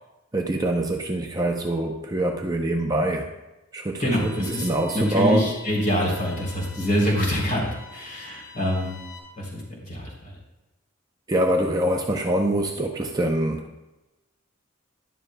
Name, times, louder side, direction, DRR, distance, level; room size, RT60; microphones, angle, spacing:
voice 1, 0.3-3.3 3.7-5.5 11.3-13.8, right 1 dB, 20° right, 2 dB, 0.6 m, -24 dB
voice 2, 4.0-9.0 9.4-10.4, equal, 40° left, -1 dB, 3.3 m, -26 dB
sound 1, 4.1-9.2, left 3 dB, 20° left, 2.7 m, -45 dB
12.5 x 11.0 x 2.2 m, 1.0 s
head